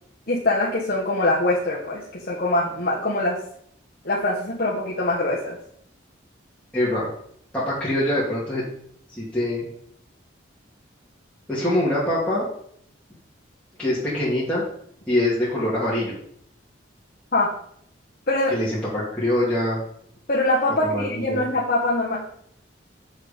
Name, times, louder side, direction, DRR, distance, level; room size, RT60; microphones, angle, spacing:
voice 1, 0.3-2.0 2.3-3.4 4.0-5.6 17.3-17.5 18.3-18.5 20.3-22.2, left 2 dB, 50° left, -5 dB, 1.5 m, -23 dB
voice 2, 6.7-7.1 7.5-8.6 9.1-9.7 11.5-12.5 13.8-14.6 15.1-16.2 18.5-19.8 20.8-21.5, left 1 dB, 5° left, -10 dB, 2.5 m, -24 dB
7.8 x 6.5 x 5.3 m, 0.67 s
head